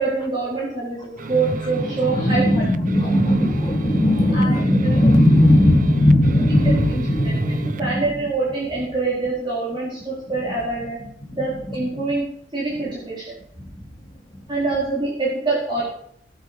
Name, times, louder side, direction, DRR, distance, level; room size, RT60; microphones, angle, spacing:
voice 1, 0.0-2.6 4.3-5.0 7.2-7.4 7.8-11.0 11.4-12.2 12.5-13.3 14.5-15.8, right 3 dB, 25° right, -8 dB, 4.3 m, -25 dB
voice 2, 1.2-8.1 10.4-10.5 11.4-12.1 12.7-12.8 13.6-13.8 14.3-14.4, left 1 dB, 25° left, 0 dB, 2.8 m, -19 dB
sound 1, 1.2-7.9, right 2 dB, 45° right, 0.6 m, -30 dB
18.0 x 7.9 x 5.2 m, 0.69 s
head